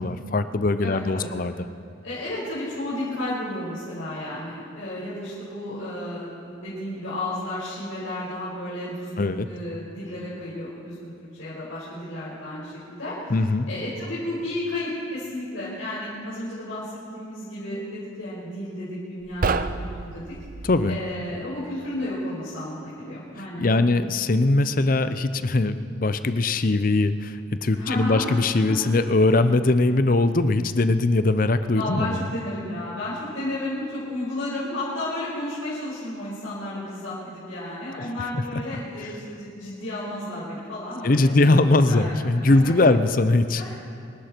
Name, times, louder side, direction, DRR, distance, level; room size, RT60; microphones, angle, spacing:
voice 1, 0.0-1.5 9.2-9.5 13.3-13.7 20.6-21.0 23.6-32.3 38.0-38.1 41.0-43.6, left 2 dB, 45° left, 11 dB, 0.6 m, -21 dB
voice 2, 0.8-1.3 2.0-11.1 11.4-13.3 13.7-20.2 20.9-23.8 27.7-28.3 31.7-42.1 42.8-42.9 43.6-43.9, left 1 dB, 90° left, -11 dB, 5.3 m, -32 dB
sound 1, 19.2-20.9, right 4 dB, 45° right, 0.5 m, -28 dB
27.0 x 11.5 x 4.5 m, 2.4 s
head